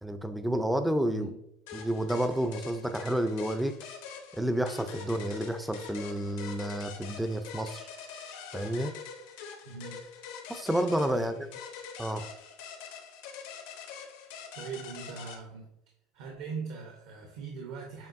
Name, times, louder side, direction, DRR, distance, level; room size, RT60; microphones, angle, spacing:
voice 1, 0.0-1.3 1.7-3.7 4.3-7.9 8.5-8.9 10.5-11.5 12.0-12.2, right 1 dB, 5° right, 9 dB, 0.3 m, -30 dB
sound 1, 1.7-15.4, left 6 dB, 80° left, 0.8 m, -44 dB
voice 2, 9.6-10.0 11.1-11.3 14.5-15.7 16.1-18.1, right 5 dB, 70° right, 0 dB, 0.9 m, -40 dB
6.9 x 3.0 x 2.5 m, 0.79 s
supercardioid pair, 145°, 0 cm